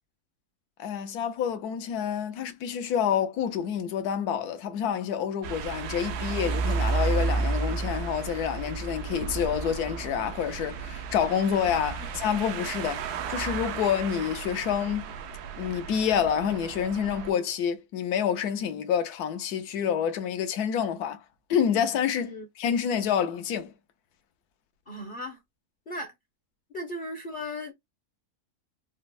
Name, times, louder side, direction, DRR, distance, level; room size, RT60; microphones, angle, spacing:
voice 1, 0.8-15.1 15.6-21.2 21.5-23.7, left 8 dB, 80° left, 1.2 m, -28 dB
sound 1, 5.4-17.3, right 4 dB, 85° right, 1.2 m, -32 dB
voice 2, 24.9-25.4 25.9-26.1 26.7-27.7, left 1 dB, 45° left, 0.7 m, -36 dB
4.3 x 2.0 x 2.2 m
omnidirectional pair, 1.6 m